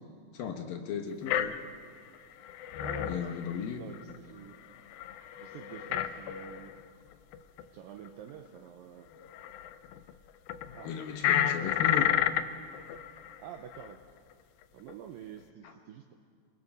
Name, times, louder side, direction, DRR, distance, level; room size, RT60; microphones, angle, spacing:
voice 1, 0.3-1.5 3.1-3.8 10.8-12.1 15.6-15.7, left 7 dB, 65° left, 5 dB, 2.5 m, -35 dB
sound 1, 1.3-1.9 2.1-2.2 2.4-4.2 4.5-4.6 4.9-6.8 7.1-7.6 8.1-8.2 9.2-10.1 10.5-13.4 13.7-13.9 14.9-15.0, left 11 dB, 85° left, 2.0 m, -31 dB
voice 2, 2.8-4.6 5.4-6.7 7.7-9.1 10.7-11.0 13.4-14.0 14.7-16.2, right 9 dB, 85° right, 5 dB, 2.0 m, -47 dB
28.0 x 20.5 x 5.4 m, 2.3 s
omnidirectional pair, 5.1 m